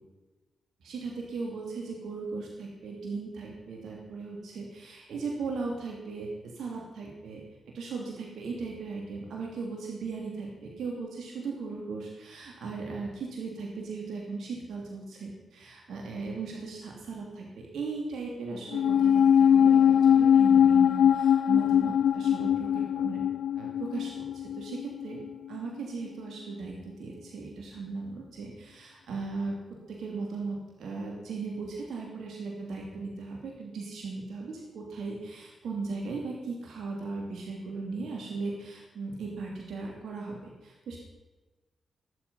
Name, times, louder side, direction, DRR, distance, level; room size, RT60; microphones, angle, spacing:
voice 1, 0.8-7.4 7.7-23.2 23.5-25.2 25.5-29.6 29.9-41.0, right 4 dB, 80° right, -1 dB, 2.8 m, -37 dB
sound 1, 18.7-25.3 25.5-25.6, left 9 dB, 80° left, 0.4 m, -22 dB
21.0 x 7.8 x 5.5 m, 1.2 s
supercardioid pair, 50°, 0 cm